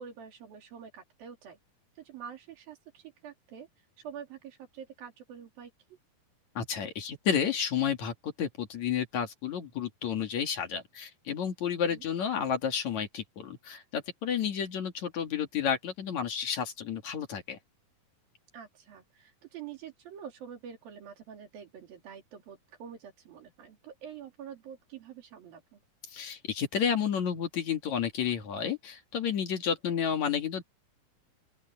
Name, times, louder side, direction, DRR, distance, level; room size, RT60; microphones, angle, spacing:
voice 1, 0.0-1.6 2.0-3.7 4.0-6.0 11.9-12.0 18.5-25.8, right 8 dB, 75° right, 4.9 m, -46 dB
voice 2, 6.5-17.6 26.1-30.6, left 8 dB, 55° left, 3.2 m, -31 dB
open air
omnidirectional pair, 4.2 m